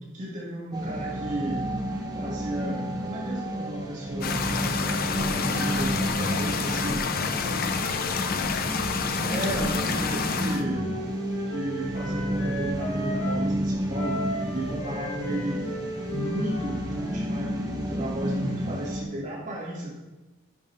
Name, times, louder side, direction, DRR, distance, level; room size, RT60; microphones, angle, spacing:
voice 1, 0.0-1.7 2.1-7.4 9.0-10.9 11.5-15.7 16.1-19.9, right 1 dB, 35° right, -5 dB, 2.4 m, -34 dB
sound 1, 0.7-19.0, equal, 20° right, 1.0 m, -31 dB
sound 2, 4.2-10.6, left 5 dB, 45° left, 0.5 m, -28 dB
Wind instrument woodwind instrument, 10.3-13.4 13.9-17.2, right 1 dB, 85° left, 3.1 m, -36 dB
11.0 x 5.3 x 3.5 m, 1.1 s
head